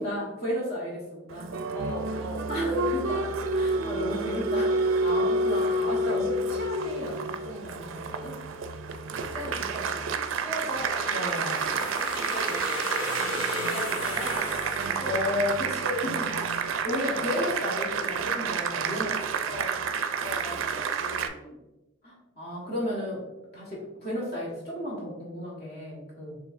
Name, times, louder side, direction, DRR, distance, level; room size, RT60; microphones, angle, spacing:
voice 1, 0.0-1.6 2.5-8.4 11.1-11.9 15.0-19.5 22.0-23.3 23.5-26.3, left 1 dB, 50° left, -5 dB, 1.5 m, -33 dB
Applause, 1.3-21.3, right 3 dB, 80° right, 0.4 m, -29 dB
voice 2, 1.7-2.8 9.3-10.0 10.3-11.1 12.1-15.2 16.8-17.2 19.5-21.6, equal, 15° left, -7 dB, 1.3 m, -39 dB
sound 1, 10.7-15.6, left 2 dB, 85° left, 1.0 m, -35 dB
6.7 x 3.0 x 2.6 m, 1.0 s
head